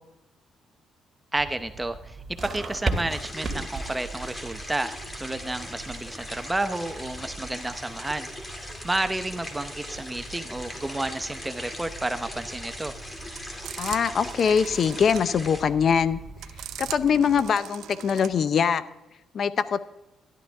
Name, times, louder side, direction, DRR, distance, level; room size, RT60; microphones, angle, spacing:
voice 1, 1.3-8.3 8.8-12.9, right 2 dB, 15° right, 9 dB, 0.7 m, -31 dB
sound 1, 1.3-17.5, right 2 dB, 30° right, 2.2 m, -39 dB
sound 2, 3.1-15.6, left 1 dB, 20° left, 2.5 m, -40 dB
sound 3, 12.8-18.5, right 11 dB, 80° right, 0.6 m, -41 dB
voice 2, 13.8-16.2 16.8-18.8 19.3-19.8, left 7 dB, 55° left, 14 dB, 0.7 m, -23 dB
12.5 x 11.5 x 3.5 m, 0.97 s
cardioid pair, 90°, 0 cm